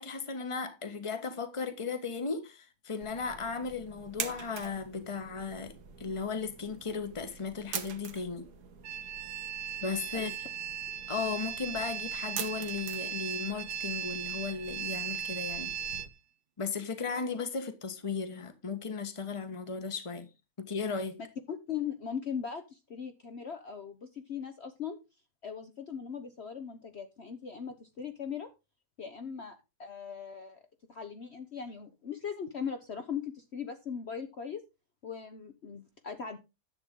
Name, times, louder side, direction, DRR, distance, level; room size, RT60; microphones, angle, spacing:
voice 1, 0.0-5.7 6.0-8.5 9.8-10.3 11.1-15.7 16.6-20.3 20.6-21.2, left 5 dB, 20° left, 1.2 m, -36 dB
sound 1, 3.0-16.1, right 7 dB, 85° right, 1.7 m, -45 dB
sound 2, 8.8-16.1, right 9 dB, 60° right, 0.7 m, -37 dB
voice 2, 21.5-25.0 25.4-28.5 29.0-30.6 30.9-34.6 35.0-36.4, left 7 dB, 45° left, 1.1 m, -39 dB
10.5 x 8.0 x 3.7 m
omnidirectional pair, 1.7 m